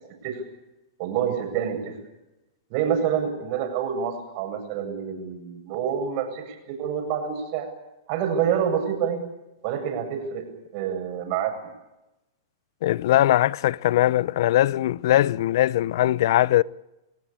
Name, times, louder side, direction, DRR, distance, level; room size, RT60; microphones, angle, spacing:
voice 1, 1.0-2.0 2.7-7.7 8.1-9.2 9.6-10.5 10.7-11.6, right 8 dB, 45° right, 8.0 m, -27 dB
voice 2, 12.8-16.6, left 14 dB, 60° left, 0.8 m, -20 dB
27.0 x 17.0 x 8.8 m
hypercardioid pair, 140°, 2 cm